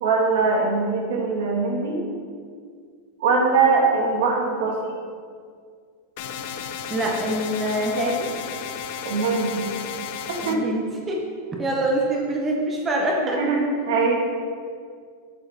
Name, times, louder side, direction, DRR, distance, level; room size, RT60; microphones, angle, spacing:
voice 1, 0.0-2.0 3.2-4.8 9.0-9.7 10.5-10.6 13.4-13.6 13.9-14.1, right 4 dB, 65° right, -1 dB, 1.3 m, -21 dB
sound 1, 6.2-10.6, left 7 dB, 45° left, 0.4 m, -33 dB
voice 2, 6.9-8.3 10.4-11.2 11.5-13.4, right 1 dB, 10° right, -1 dB, 0.5 m, -25 dB
7.7 x 4.9 x 3.3 m, 2.1 s
supercardioid pair, 175°, 0 cm